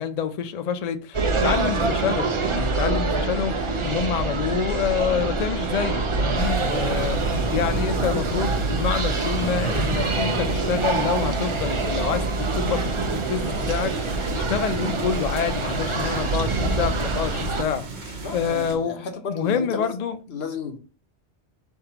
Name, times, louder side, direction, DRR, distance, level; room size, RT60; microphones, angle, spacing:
voice 1, 0.0-20.2, left 7 dB, 55° left, 0.5 m, -27 dB
York Railway Station ambience, 1.1-17.6, right 3 dB, 40° right, 0.5 m, -25 dB
sound 1, 6.3-18.8, right 3 dB, 75° right, 1.2 m, -34 dB
voice 2, 18.2-19.9 20.3-20.8, left 5 dB, 70° left, 1.0 m, -33 dB
4.7 x 3.6 x 2.8 m
omnidirectional pair, 1.1 m